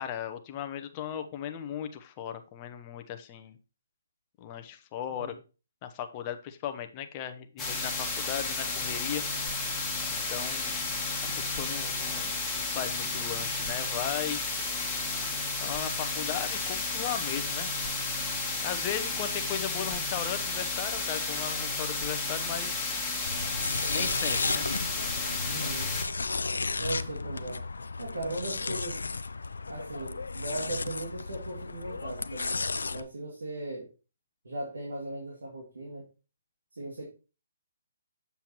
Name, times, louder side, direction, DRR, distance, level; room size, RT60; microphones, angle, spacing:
voice 1, 0.0-3.6 4.4-5.3 5.8-9.6 10.1-10.7 11.4-12.3 12.5-14.4 15.6-17.7 18.6-22.8 23.9-24.7, left 9 dB, 30° left, 8 dB, 0.7 m, -37 dB
sound 1, 7.6-26.0, left 3 dB, 10° left, 1.6 m, -32 dB
sound 2, 23.3-33.0, left 4 dB, 85° left, 0.5 m, -34 dB
voice 2, 24.0-24.6 25.4-25.9 26.8-27.6 28.0-29.0 29.7-33.9 34.4-36.0 36.7-37.1, right 2 dB, 85° right, -1 dB, 2.2 m, -38 dB
7.5 x 6.9 x 2.9 m, 0.33 s
hypercardioid pair, 145°, 0 cm